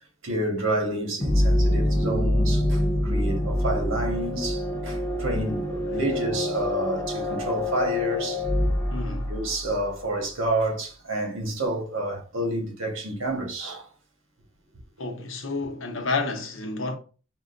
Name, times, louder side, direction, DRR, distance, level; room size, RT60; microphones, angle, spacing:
voice 1, 0.2-8.4 9.3-13.9, right 1 dB, 85° right, 1.2 m, -29 dB
sound 1, 1.2-9.8, left 1 dB, 10° left, 0.6 m, -25 dB
voice 2, 8.9-9.3 15.0-17.0, left 3 dB, 80° left, 0.9 m, -30 dB
6.0 x 2.1 x 2.5 m
head